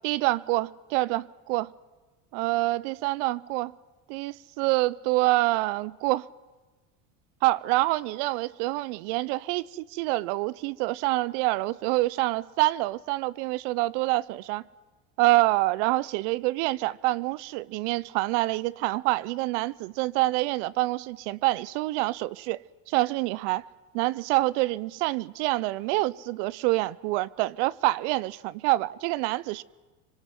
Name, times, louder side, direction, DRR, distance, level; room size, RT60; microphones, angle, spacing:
voice 1, 0.0-1.7 2.3-3.7 4.1-6.2 7.4-14.6 15.2-22.6 22.9-23.6 23.9-29.6, right 19 dB, 75° right, 0.8 m, -26 dB
25.5 x 21.0 x 9.3 m
supercardioid pair, 110°, 36 cm